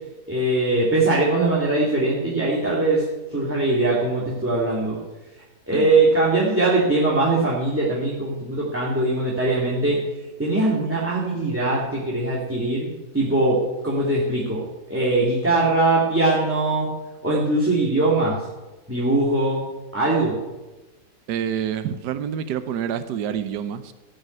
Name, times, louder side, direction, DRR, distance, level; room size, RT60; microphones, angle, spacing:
voice 1, 0.3-5.0 5.3-10.0 10.4-16.9 17.2-18.5 18.9-19.6 19.9-20.4, right 2 dB, 10° right, -6 dB, 2.2 m, -21 dB
voice 2, 21.3-23.9, right 9 dB, 85° right, 10 dB, 1.3 m, -27 dB
15.5 x 6.5 x 9.3 m, 1.2 s
omnidirectional pair, 1.8 m